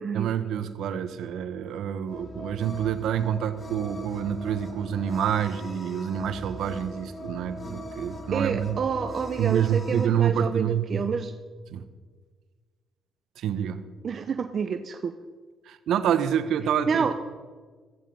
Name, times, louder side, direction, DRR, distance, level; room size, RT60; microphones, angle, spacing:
voice 1, 0.1-8.8 9.4-11.2 11.7-11.8 13.4-13.8 15.6-17.1, right 9 dB, 80° right, 11 dB, 1.1 m, -27 dB
sound 1, 2.1-10.1, left 1 dB, 35° left, 2.6 m, -40 dB
voice 2, 8.3-11.4 14.0-15.1 16.9-17.1, right 6 dB, 50° right, 8 dB, 0.8 m, -28 dB
15.0 x 14.5 x 5.4 m, 1.5 s
cardioid pair, 90°, 0 cm